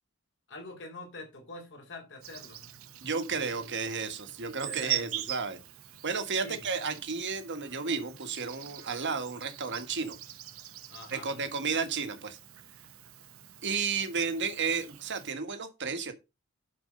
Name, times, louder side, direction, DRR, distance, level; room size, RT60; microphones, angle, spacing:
voice 1, 0.5-2.7 3.3-3.6 4.6-5.1 6.4-6.6 10.9-11.5, left 2 dB, 60° left, 3.7 m, -45 dB
Insect, 2.2-15.3, right 12 dB, 75° right, 1.1 m, -43 dB
voice 2, 3.0-5.6 6.0-10.2 11.1-12.4 13.6-16.1, right 5 dB, 55° right, 1.6 m, -32 dB
11.5 x 4.6 x 5.4 m
head